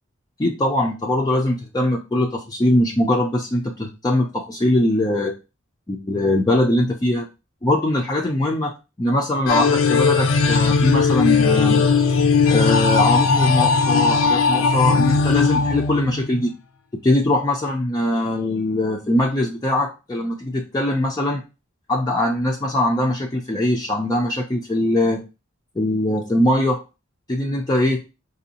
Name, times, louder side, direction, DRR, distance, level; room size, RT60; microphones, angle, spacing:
voice 1, 0.4-5.3 5.9-7.3 7.6-8.7 9.0-11.8 12.5-16.5 17.0-21.4 21.9-25.2 25.8-26.8 27.3-28.0, left 1 dB, 20° left, 0 dB, 0.4 m, -21 dB
sound 1, 9.5-16.5, left 4 dB, 70° left, 0.5 m, -18 dB
4.6 x 2.6 x 2.8 m, 0.28 s
head